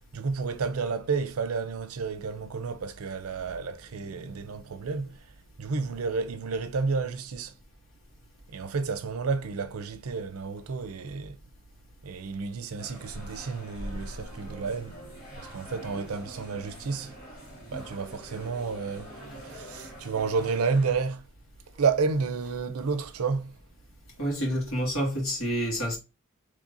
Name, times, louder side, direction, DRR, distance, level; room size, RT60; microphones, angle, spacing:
voice 1, 0.1-7.6 8.5-11.4 12.0-15.0 15.4-17.2 17.7-21.3 21.8-23.6, right 4 dB, 85° right, 0.5 m, -31 dB
sound 1, 12.8-21.0, equal, 35° left, 2.1 m, -44 dB
voice 2, 24.2-26.0, equal, 80° left, 1.9 m, -28 dB
3.7 x 3.2 x 2.6 m
head